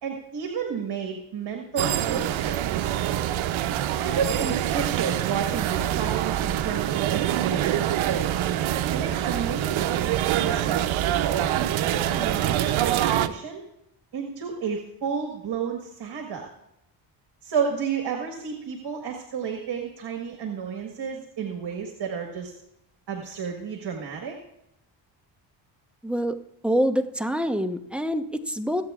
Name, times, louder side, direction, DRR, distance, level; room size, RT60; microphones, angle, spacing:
voice 1, 0.0-2.9 4.0-8.4 8.9-10.1 10.4-13.6 14.1-16.5 17.4-22.5 23.1-24.4, right 6 dB, 55° right, 2 dB, 1.6 m, -31 dB
sound 1, 1.8-13.3, right 12 dB, 75° right, 0.7 m, -25 dB
voice 2, 26.0-26.4 26.6-28.8, equal, ahead, 7 dB, 0.9 m, -25 dB
24.5 x 8.2 x 2.4 m, 0.82 s
cardioid pair, 65°, 48 cm